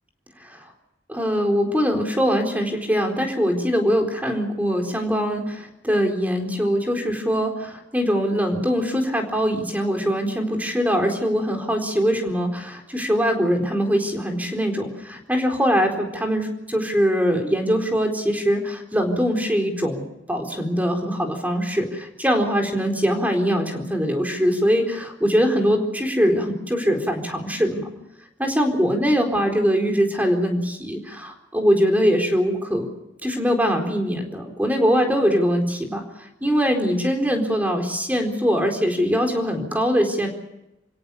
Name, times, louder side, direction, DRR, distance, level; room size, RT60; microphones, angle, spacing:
voice 1, 1.1-27.9 28.4-32.9 33.2-40.3, equal, 10° right, 3 dB, 4.2 m, -22 dB
29.0 x 17.0 x 7.0 m, 0.91 s
head